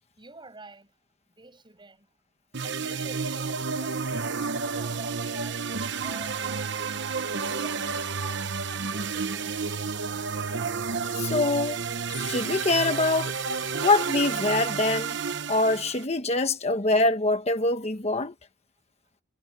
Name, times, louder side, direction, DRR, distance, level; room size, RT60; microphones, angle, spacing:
voice 1, 0.2-0.9 1.4-2.1 2.6-4.5 4.8-6.8 7.2-9.5, right 2 dB, 25° right, 7.3 m, -48 dB
sound 1, 2.5-16.0, right 5 dB, 65° right, 1.0 m, -31 dB
voice 2, 11.2-11.8 12.1-13.3 13.8-15.2 15.5-18.3, left 2 dB, 35° left, 1.2 m, -24 dB
head